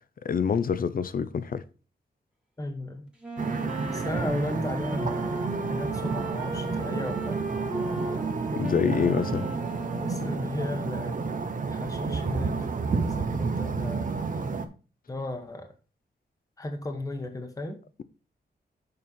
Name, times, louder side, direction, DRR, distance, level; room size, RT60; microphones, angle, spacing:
voice 1, 0.2-1.6 8.5-9.5, left 6 dB, 55° left, 0.6 m, -26 dB
voice 2, 2.6-3.1 3.9-5.3 5.6-7.4 8.7-9.3 10.0-11.2 11.6-12.7 13.0-14.2 15.1-15.7 16.6-17.8, left 2 dB, 20° left, 1.0 m, -35 dB
Wind instrument woodwind instrument, 3.2-10.9, right 2 dB, 5° right, 1.6 m, -37 dB
sound 1, 3.4-14.7, right 4 dB, 50° right, 0.8 m, -30 dB
6.7 x 5.4 x 4.2 m
wide cardioid pair, 145°, 18 cm